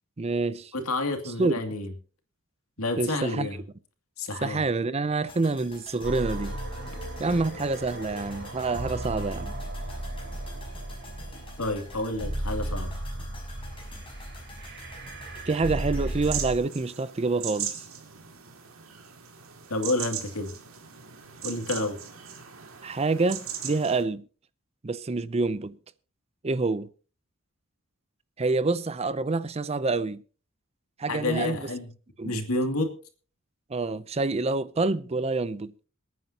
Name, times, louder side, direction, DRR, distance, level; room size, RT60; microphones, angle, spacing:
voice 1, 0.2-0.7 1.4-1.5 3.0-3.5 4.4-6.6 7.2-9.5 15.5-17.8 22.8-24.2 24.8-25.8 26.4-26.9 28.4-30.2 31.0-31.7 32.2-32.5 33.7-35.7, right 3 dB, 30° right, 0.5 m, -27 dB
voice 2, 0.7-1.9 2.8-3.6 4.2-4.6 11.6-12.9 19.7-20.5 21.4-22.0 31.1-31.9 32.2-32.9, left 2 dB, 90° left, 2.6 m, -29 dB
sound 1, 5.3-17.5 17.7-17.8, left 2 dB, 25° left, 5.9 m, -49 dB
sound 2, 6.0-16.5, right 1 dB, 55° right, 3.9 m, -35 dB
sound 3, 16.2-24.0, right 9 dB, 70° right, 2.3 m, -38 dB
27.5 x 9.4 x 2.9 m
head